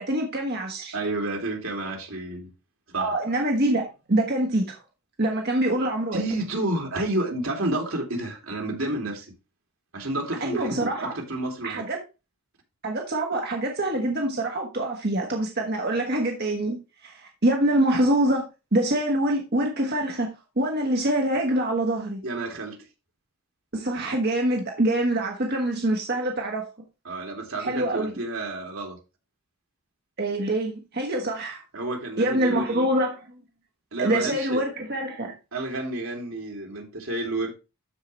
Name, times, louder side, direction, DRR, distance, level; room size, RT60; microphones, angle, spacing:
voice 1, 0.0-0.9 3.0-4.8 5.2-6.2 10.4-11.1 11.6-12.0 12.8-16.8 17.0-18.4 18.7-22.2 23.7-26.7 27.6-28.2 30.2-31.6 32.2-33.2 34.0-35.3, right 1 dB, 45° right, 1.4 m, -25 dB
voice 2, 0.9-2.5 2.9-3.3 6.1-9.3 9.9-11.9 22.2-22.8 27.0-29.0 31.7-32.8 33.9-34.7 35.5-37.6, right 2 dB, 65° right, 2.5 m, -30 dB
13.0 x 4.8 x 3.1 m
head